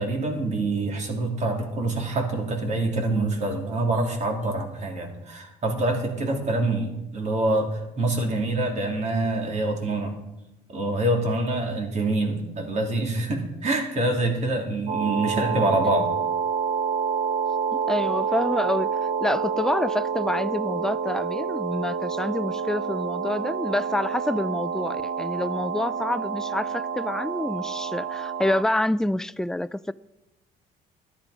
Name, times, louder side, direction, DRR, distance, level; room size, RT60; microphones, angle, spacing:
voice 1, 0.0-10.2 10.7-16.1, right 2 dB, 45° right, 3.0 m, -26 dB
sound 1, 14.9-28.6, right 6 dB, 70° right, 1.3 m, -28 dB
voice 2, 17.9-29.9, left 1 dB, 5° left, 0.3 m, -27 dB
13.5 x 10.5 x 5.0 m
cardioid pair, 110°, 17 cm